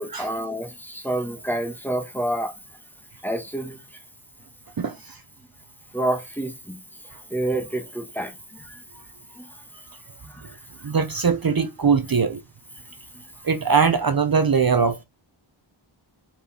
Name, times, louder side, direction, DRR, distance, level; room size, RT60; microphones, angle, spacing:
voice 1, 0.0-2.5 3.2-3.8 5.9-6.8 7.3-8.8 9.4-9.5 10.2-10.4, right 1 dB, 5° left, 1.5 m, -28 dB
voice 2, 4.8-5.2 10.8-12.4 13.4-15.0, right 5 dB, 45° right, 0.8 m, -21 dB
5.1 x 4.4 x 4.3 m
wide cardioid pair, 60°, 49 cm